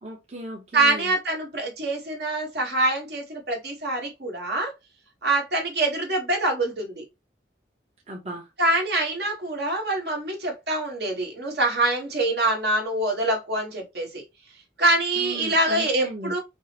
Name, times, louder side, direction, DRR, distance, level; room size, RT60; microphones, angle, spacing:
voice 1, 0.0-1.1 8.1-8.5 15.1-16.3, right 1 dB, 35° right, 0.8 m, -36 dB
voice 2, 0.7-4.7 5.2-7.0 8.6-14.2 14.8-16.4, right 2 dB, 65° right, 1.4 m, -25 dB
5.3 x 2.0 x 2.9 m
head